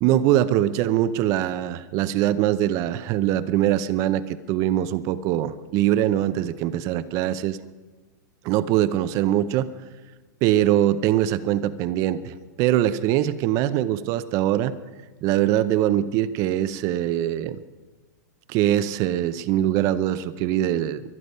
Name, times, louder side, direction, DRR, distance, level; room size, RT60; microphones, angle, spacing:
voice 1, 0.0-7.6 8.4-9.7 10.4-14.7 15.2-17.6 18.5-21.0, right 12 dB, 30° right, 14 dB, 0.6 m, -22 dB
23.5 x 9.9 x 5.5 m, 1.3 s
hypercardioid pair, 150°, 10 cm